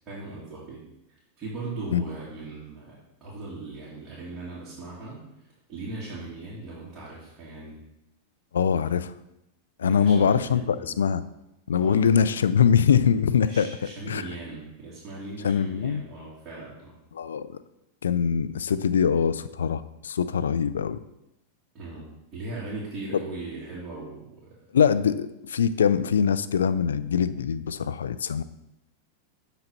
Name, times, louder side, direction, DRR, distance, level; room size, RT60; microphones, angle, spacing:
voice 1, 0.1-7.8 9.8-11.0 11.8-12.0 13.5-17.0 21.7-24.6, right 2 dB, 30° right, -9 dB, 2.2 m, -39 dB
voice 2, 8.5-9.1 9.8-11.2 11.7-13.7 14.1-14.3 15.4-16.0 17.1-17.5 18.0-21.0 24.7-28.4, left 7 dB, 90° left, 14 dB, 0.3 m, -23 dB
6.9 x 4.0 x 4.4 m, 0.89 s
hypercardioid pair, 110°, 0 cm